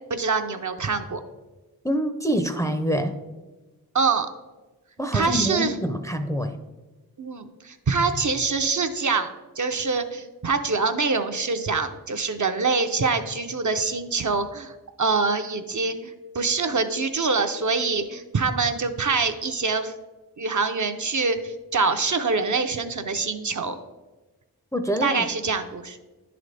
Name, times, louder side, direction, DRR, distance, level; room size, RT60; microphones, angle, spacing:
voice 1, 0.1-1.2 3.9-4.3 5.1-5.8 7.2-14.7 15.0-19.9 20.4-23.8 25.0-26.0, right 4 dB, 50° right, 6 dB, 0.5 m, -25 dB
voice 2, 1.8-3.1 5.0-6.6 24.7-25.3, equal, 10° left, 6 dB, 0.5 m, -26 dB
10.5 x 3.9 x 3.3 m, 1.2 s
wide cardioid pair, 45°, 38 cm